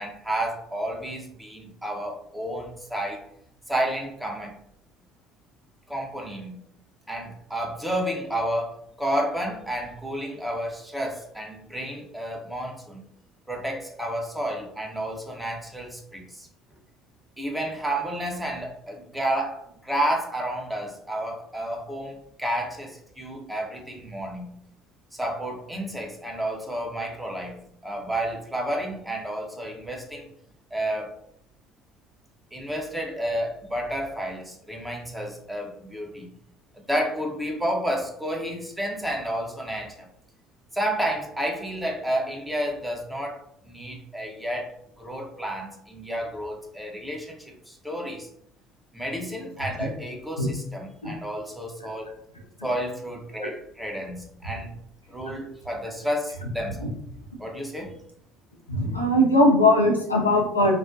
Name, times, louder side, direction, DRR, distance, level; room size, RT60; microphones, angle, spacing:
voice 1, 0.0-3.2 3.7-4.5 5.9-6.6 7.1-13.0 13.5-16.5 17.4-24.6 25.1-30.3 30.7-31.1 32.5-36.3 36.7-40.1 40.7-48.3 48.9-52.1 52.6-54.8 55.1-56.9 57.4-57.9, right 1 dB, 5° right, 0 dB, 0.6 m, -31 dB
voice 2, 58.7-60.7, left 1 dB, 90° left, -1 dB, 0.4 m, -19 dB
2.4 x 2.1 x 2.4 m, 0.68 s
figure-of-eight pair, 60°, 0 cm